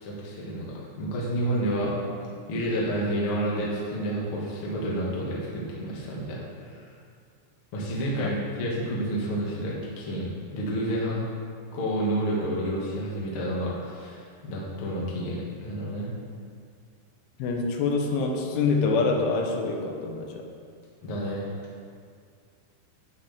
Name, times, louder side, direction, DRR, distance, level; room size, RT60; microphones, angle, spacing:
voice 1, 0.0-1.9 2.5-6.4 6.6-6.9 7.7-11.2 11.7-16.1 21.0-21.5, right 1 dB, 55° left, -5 dB, 1.5 m, -30 dB
voice 2, 17.4-20.5, left 4 dB, 85° left, 2 dB, 3.3 m, -26 dB
11.0 x 8.3 x 3.5 m, 2.2 s
omnidirectional pair, 5.5 m